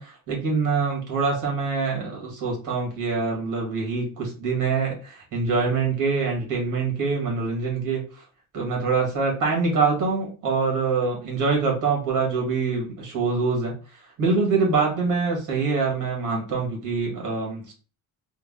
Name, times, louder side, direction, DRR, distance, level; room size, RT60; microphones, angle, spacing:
voice 1, 0.0-8.0 8.5-13.7 14.2-17.7, right 4 dB, 65° right, -1 dB, 1.8 m, -24 dB
3.8 x 2.0 x 3.7 m, 0.36 s
cardioid pair, 150°, 34 cm